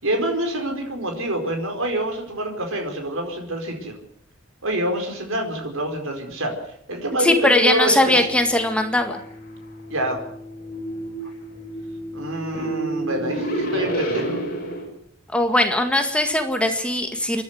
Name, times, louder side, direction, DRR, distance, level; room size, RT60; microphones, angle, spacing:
voice 1, 0.0-3.9 4.6-6.5 6.9-8.2 9.9-10.2 12.1-14.4, right 1 dB, 75° right, 3 dB, 4.8 m, -26 dB
voice 2, 7.2-9.2 15.3-17.4, left 1 dB, 5° left, 5 dB, 1.9 m, -20 dB
sound 1, 8.0-14.8, right 1 dB, 45° left, 6.1 m, -30 dB
28.0 x 11.5 x 8.0 m, 0.67 s
head